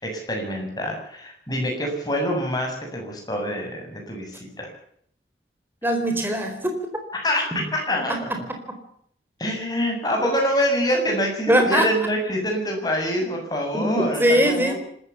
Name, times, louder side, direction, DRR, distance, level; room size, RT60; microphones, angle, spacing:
voice 1, 0.0-4.7 7.1-8.3 9.4-14.7, equal, 20° left, 2 dB, 7.5 m, -26 dB
voice 2, 5.8-6.8 7.5-7.6 8.1-8.2 11.5-11.9 13.7-14.7, right 1 dB, 10° right, 4 dB, 4.5 m, -21 dB
26.0 x 14.0 x 7.2 m, 0.65 s
head